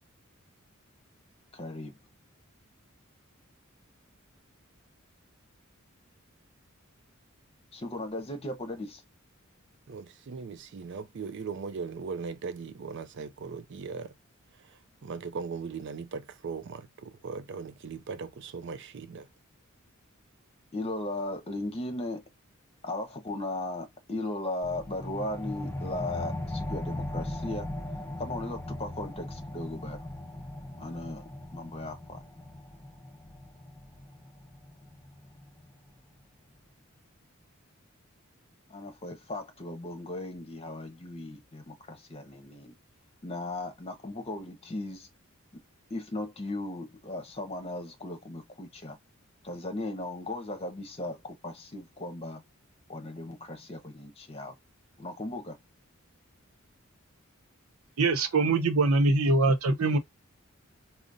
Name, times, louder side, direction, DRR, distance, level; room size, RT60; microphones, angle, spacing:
voice 1, 1.5-1.9 7.7-9.0 20.7-22.2 22.8-27.7 28.2-30.0 30.8-31.2 31.5-32.2 38.7-42.7 43.2-45.1 45.9-49.0 49.4-52.4 52.9-54.5 55.0-55.6, left 2 dB, 30° left, 0.9 m, -37 dB
voice 2, 9.9-14.1 15.0-19.2, right 5 dB, 55° right, 0.4 m, -38 dB
sound 1, 24.6-35.7, left 1 dB, 10° left, 0.6 m, -39 dB
voice 3, 58.0-60.0, right 3 dB, 85° right, 0.7 m, -23 dB
5.1 x 2.0 x 2.5 m
head